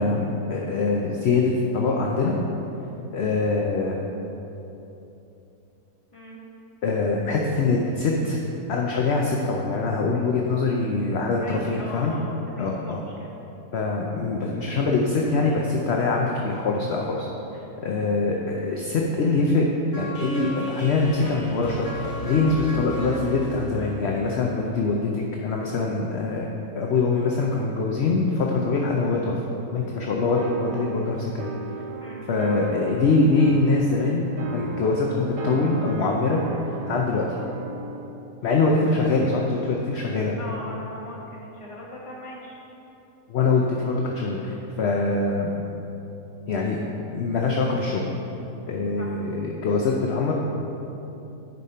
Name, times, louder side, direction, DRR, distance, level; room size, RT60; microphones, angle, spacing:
voice 1, 0.0-2.4 3.1-4.0 6.8-8.4 8.7-12.1 12.6-13.0 13.7-17.3 17.8-19.7 19.9-29.4 29.7-31.5 32.3-36.4 36.9-37.4 38.4-40.3 43.3-45.5 46.5-46.8 47.1-48.0 48.7-50.3, left 3 dB, 55° left, -1 dB, 0.8 m, -23 dB
voice 2, 11.4-13.3 22.4-22.6 32.0-32.3 40.4-42.6 49.0-49.2, left 1 dB, 20° left, -4 dB, 1.3 m, -40 dB
sound 1, 19.9-24.9, left 1 dB, 75° left, 2.5 m, -35 dB
sound 2, 30.4-38.2, right 4 dB, 55° right, 0.6 m, -36 dB
10.5 x 5.4 x 4.2 m, 2.9 s
omnidirectional pair, 1.6 m